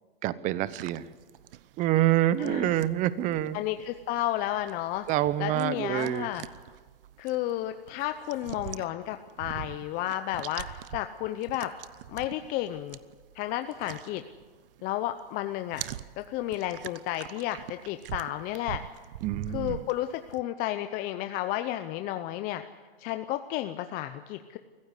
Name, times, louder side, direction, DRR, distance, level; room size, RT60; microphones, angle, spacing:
voice 1, 0.2-1.1 1.8-3.6 5.1-6.3 19.2-19.8, right 14 dB, 25° right, 17 dB, 0.7 m, -27 dB
sound 1, 0.7-14.9 15.2-20.4, right 12 dB, 65° right, 0.8 m, -44 dB
voice 2, 2.4-2.8 3.5-5.0 5.4-6.4 7.2-11.7 12.1-13.0 13.3-14.2 14.8-15.8 16.2-18.8 19.5-22.6 23.0-24.6, left 14 dB, 30° left, 9 dB, 0.7 m, -32 dB
23.5 x 15.0 x 8.2 m, 1.4 s
hypercardioid pair, 140°, 30 cm